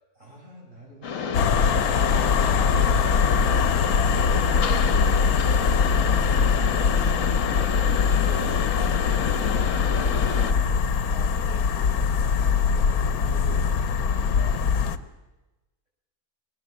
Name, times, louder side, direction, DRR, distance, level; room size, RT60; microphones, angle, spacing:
voice 1, 0.2-2.2 2.7-3.0 7.2-7.9, right 2 dB, 55° right, -3 dB, 8.3 m, -45 dB
Mechanisms, 1.0-10.5, left 6 dB, 60° left, 1.5 m, -30 dB
sound 1, 1.3-15.0, left 6 dB, 80° left, 1.4 m, -22 dB
voice 2, 2.1-3.5 4.1-4.5 4.7-5.6 6.3-6.4 8.0-9.5 9.9-14.7 15.0-15.1, right 1 dB, 25° right, 1 dB, 4.0 m, -45 dB
20.5 x 19.0 x 7.5 m, 1.1 s
omnidirectional pair, 1.5 m